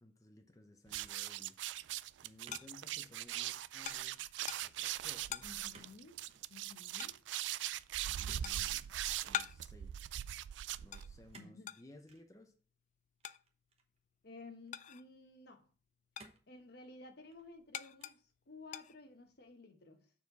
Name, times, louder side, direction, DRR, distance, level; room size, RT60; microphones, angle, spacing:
voice 1, 0.0-1.6 2.2-4.2 4.6-5.5 8.1-9.9 10.8-12.5, left 1 dB, 20° left, 0.7 m, -59 dB
sound 1, 0.9-11.3, right 13 dB, 85° right, 0.3 m, -41 dB
sound 2, 1.5-15.3 15.6-19.5, left 10 dB, 45° left, 0.3 m, -48 dB
sound 3, 2.4-3.2 3.6-4.0 5.7-6.0 6.2-6.5 8.2-9.0 11.3-11.6 12.1-12.3 13.2-14.0 14.7-14.8 16.2-16.5 17.1-17.6 18.0-18.3, right 3 dB, 35° right, 1.0 m, -60 dB
voice 2, 5.4-6.2 6.5-7.2 11.3-11.8 14.2-15.6 16.5-20.1, left 3 dB, 65° left, 1.1 m, -54 dB
7.1 x 4.3 x 4.1 m
head